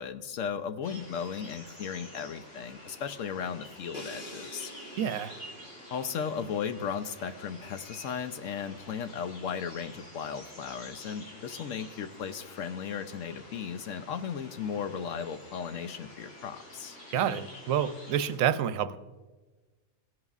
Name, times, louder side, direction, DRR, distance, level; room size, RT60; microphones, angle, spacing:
voice 1, 0.0-4.7 5.9-17.0, left 7 dB, 70° left, 9 dB, 0.9 m, -36 dB
sound 1, 0.8-18.4, equal, 90° left, 4.9 m, -49 dB
Crash cymbal, 3.9-7.7, equal, 45° left, 1.4 m, -48 dB
voice 2, 5.0-5.4 17.1-19.0, right 9 dB, 75° right, 11 dB, 1.0 m, -28 dB
18.0 x 10.5 x 2.4 m, 1.2 s
omnidirectional pair, 1.5 m